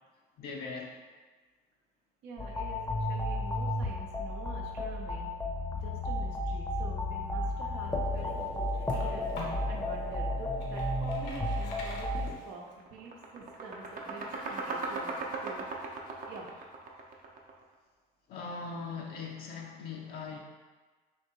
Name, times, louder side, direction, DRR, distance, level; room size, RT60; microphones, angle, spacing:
voice 1, 0.4-1.0 18.3-20.4, left 4 dB, 65° left, 0 dB, 0.5 m, -40 dB
voice 2, 2.2-5.3 5.7-16.8, right 4 dB, 85° right, -1 dB, 0.8 m, -47 dB
sound 1, 2.4-12.3, left 1 dB, 15° left, 0.6 m, -33 dB
sound 2, 7.6-9.7 10.2-12.7, left 2 dB, 80° left, 0.9 m, -45 dB
sound 3, 12.1-12.3 12.7-17.6, right 3 dB, 55° right, 0.7 m, -38 dB
3.4 x 2.8 x 4.5 m, 1.4 s
cardioid pair, 110°, 17 cm